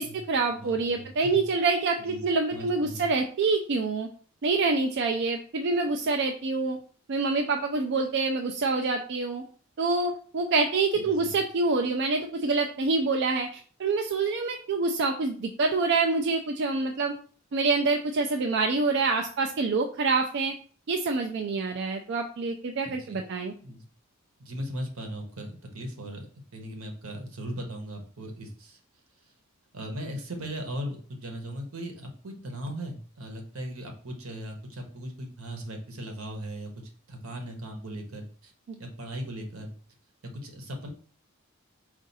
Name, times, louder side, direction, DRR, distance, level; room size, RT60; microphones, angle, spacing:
voice 1, 0.0-4.1 4.4-6.8 7.1-9.4 9.8-17.1 17.5-20.5 20.9-23.5 38.7-38.8, right 3 dB, 55° right, 3 dB, 0.4 m, -26 dB
voice 2, 0.5-1.4 2.1-2.2 2.5-3.0 10.9-11.3 22.8-23.2 23.6-23.8 24.4-26.3 26.5-28.8 29.7-36.7 37.1-38.5 38.8-39.7 40.4-40.9, equal, 80° right, 3 dB, 1.0 m, -38 dB
4.7 x 2.5 x 4.0 m, 0.44 s
head